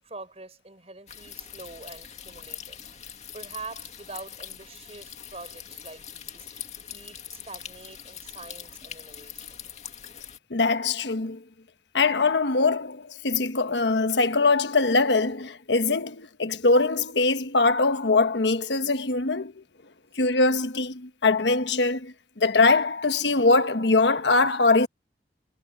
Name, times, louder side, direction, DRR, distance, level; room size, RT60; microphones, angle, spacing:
voice 1, 0.0-2.8 3.3-6.7 6.9-9.6, right 3 dB, 35° right, 6.1 m, -44 dB
sound 1, 1.1-10.4, left 9 dB, 40° left, 2.1 m, -42 dB
voice 2, 10.5-11.4 11.9-19.6 20.1-24.9, left 3 dB, 85° left, 1.2 m, -22 dB
head